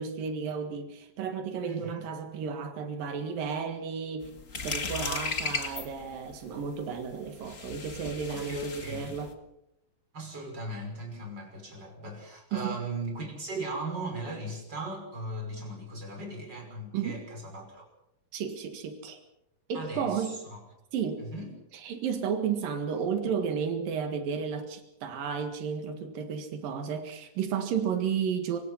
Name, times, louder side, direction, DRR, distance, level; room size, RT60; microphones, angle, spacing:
voice 1, 0.0-4.4 4.6-9.3 12.5-12.8 16.9-17.2 18.3-19.2 19.7-20.4 20.9-21.3 21.8-28.6, right 6 dB, 90° right, 6 dB, 3.5 m, -33 dB
voice 2, 1.7-2.1 8.3-9.1 10.1-17.8 19.7-20.6 21.2-21.5, right 2 dB, 30° right, 2 dB, 6.3 m, -38 dB
sound 1, 4.2-9.3, left 4 dB, 30° left, 1.5 m, -36 dB
25.5 x 24.0 x 5.7 m, 0.82 s
omnidirectional pair, 3.8 m